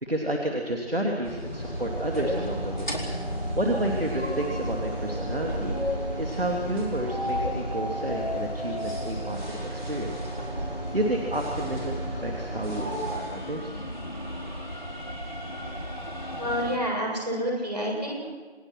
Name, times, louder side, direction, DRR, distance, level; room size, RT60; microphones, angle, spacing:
voice 1, 0.0-2.9 3.5-10.1 10.9-13.8, right 1 dB, 60° right, 0 dB, 3.1 m, -31 dB
sound 1, 1.2-16.8, left 1 dB, 45° left, 4.2 m, -35 dB
sound 2, 1.5-13.1, right 1 dB, 5° right, 4.8 m, -34 dB
voice 2, 16.4-18.2, equal, 40° right, -3 dB, 7.8 m, -28 dB
29.0 x 20.5 x 6.2 m, 1.4 s
figure-of-eight pair, 175°, 33 cm